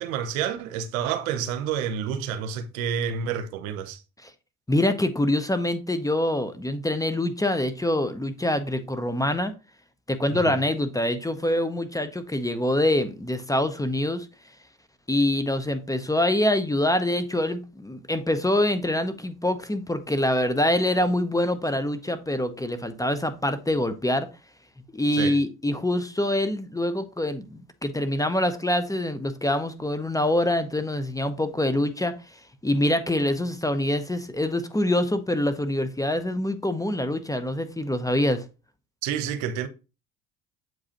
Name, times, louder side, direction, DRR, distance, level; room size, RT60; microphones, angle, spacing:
voice 1, 0.0-4.0 10.3-10.5 25.2-25.4 39.0-39.7, right 8 dB, 80° right, 0.9 m, -29 dB
voice 2, 4.7-9.5 10.1-14.3 15.1-24.3 24.9-32.1 32.6-38.4, left 1 dB, 10° left, 0.7 m, -25 dB
7.7 x 4.8 x 2.9 m
hypercardioid pair, 70°, 40 cm